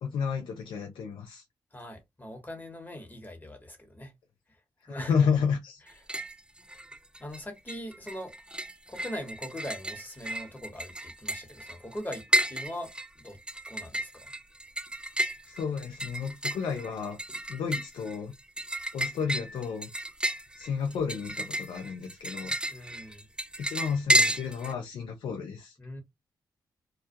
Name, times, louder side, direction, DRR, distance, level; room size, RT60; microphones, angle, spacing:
voice 1, 0.0-1.4 4.8-5.8 15.4-17.2 17.5-18.3 18.9-19.9 20.5-22.6 23.6-25.8, left 6 dB, 85° left, 0.4 m, -31 dB
voice 2, 1.7-4.1 4.5-4.6 4.9-5.3 7.2-8.3 8.9-13.4 13.7-14.3 22.7-23.3 25.8-26.0, equal, 20° left, 1.2 m, -41 dB
sound 1, 5.9-6.4 6.7-7.4 7.7-24.7, right 1 dB, 10° right, 0.4 m, -32 dB
2.3 x 2.2 x 2.6 m
supercardioid pair, 50°, 8 cm